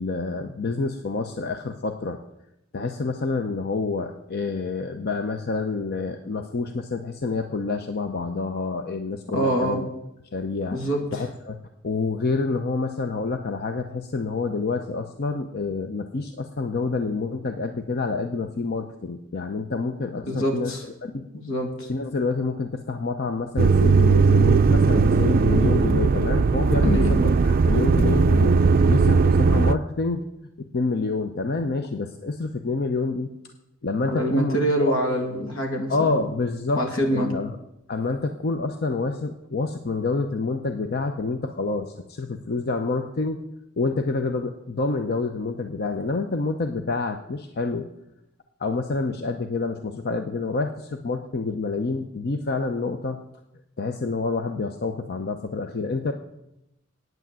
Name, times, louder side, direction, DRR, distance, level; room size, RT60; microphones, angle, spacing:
voice 1, 0.0-2.2 2.7-9.9 10.3-10.8 11.1-11.6 11.8-20.7 21.0-21.2 21.9-30.3 30.6-33.3 33.8-35.0 35.9-36.8 37.1-37.6 37.9-43.4 43.8-47.9 48.6-53.2 53.8-56.1, left 3 dB, 50° left, 6 dB, 0.6 m, -28 dB
voice 2, 9.3-9.8 10.7-11.2 20.3-20.8 21.3-21.9 26.8-27.2 34.1-36.2 36.8-37.3, equal, 80° left, 3 dB, 2.3 m, -25 dB
sound 1, 23.6-29.7, right 4 dB, 45° right, 0.4 m, -18 dB
9.2 x 8.2 x 7.5 m, 0.86 s
head